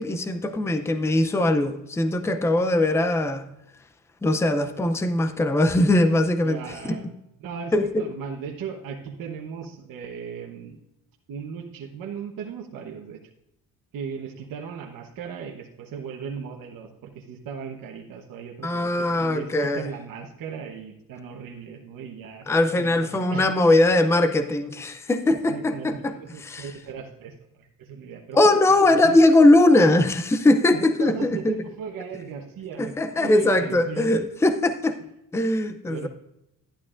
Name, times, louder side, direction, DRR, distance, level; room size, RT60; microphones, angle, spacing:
voice 1, 0.0-3.4 4.2-7.0 7.7-8.0 18.6-19.9 22.5-26.1 26.4-26.7 28.3-31.5 32.8-35.0 35.3-36.1, left 2 dB, 10° left, 9 dB, 0.5 m, -20 dB
voice 2, 6.4-7.1 7.4-10.8 11.3-13.2 13.9-23.5 25.2-28.4 28.7-29.2 30.7-34.1 35.9-36.1, right 6 dB, 65° right, 2 dB, 1.2 m, -37 dB
11.5 x 11.0 x 2.5 m, 0.85 s
cardioid pair, 140°, 35 cm